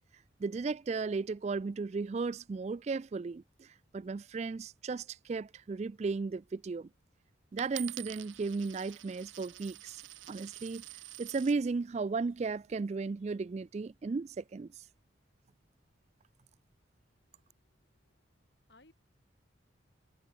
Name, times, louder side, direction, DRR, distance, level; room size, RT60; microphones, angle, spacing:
voice 1, 0.4-6.9 7.5-10.0 10.3-10.8 11.2-14.8, right 4 dB, 35° right, 0.3 m, -35 dB
Coin (dropping), 7.6-11.6 12.3-12.7, right 14 dB, 90° right, 1.4 m, -47 dB
voice 2, 17.3-18.2 18.7-18.9, left 2 dB, 60° left, 5.7 m, -65 dB
head